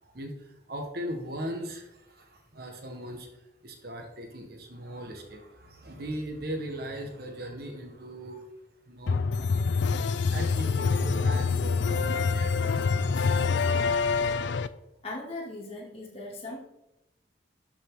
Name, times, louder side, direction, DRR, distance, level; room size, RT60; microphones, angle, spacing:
voice 1, 0.0-9.6 10.3-13.5, right 1 dB, 55° right, 3 dB, 1.5 m, -39 dB
sound 1, 9.1-14.7, left 4 dB, 75° left, 0.5 m, -26 dB
voice 2, 15.0-16.6, left 2 dB, 30° left, -3 dB, 2.6 m, -38 dB
12.5 x 6.7 x 3.8 m, 0.91 s
head